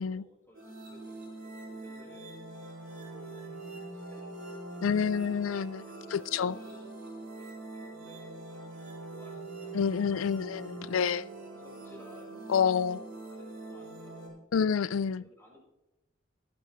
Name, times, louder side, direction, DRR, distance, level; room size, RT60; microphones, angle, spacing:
voice 1, 0.0-2.5 2.9-5.6 6.0-7.5 7.8-10.6 10.9-12.7 13.3-14.5 15.2-15.6, left 1 dB, 10° left, -4 dB, 4.9 m, -57 dB
sound 1, 0.5-14.3, right 2 dB, 80° right, 4.9 m, -43 dB
voice 2, 4.8-5.8 6.1-6.5 9.7-11.3 12.5-13.0 14.5-15.2, left 7 dB, 90° left, 20 dB, 0.4 m, -28 dB
19.0 x 9.2 x 3.1 m, 0.89 s
head